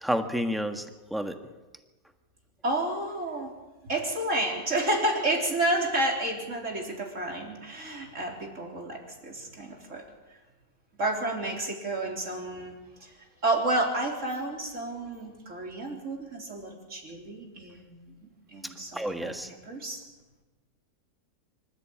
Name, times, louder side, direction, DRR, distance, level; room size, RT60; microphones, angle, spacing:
voice 1, 0.0-0.8 1.1-1.4 18.9-19.5, equal, ahead, 5 dB, 1.4 m, -29 dB
voice 2, 2.6-3.5 3.8-10.0 11.0-18.2 18.5-20.0, right 1 dB, 55° right, 0 dB, 4.1 m, -31 dB
25.0 x 14.0 x 8.8 m, 1.2 s
omnidirectional pair, 1.6 m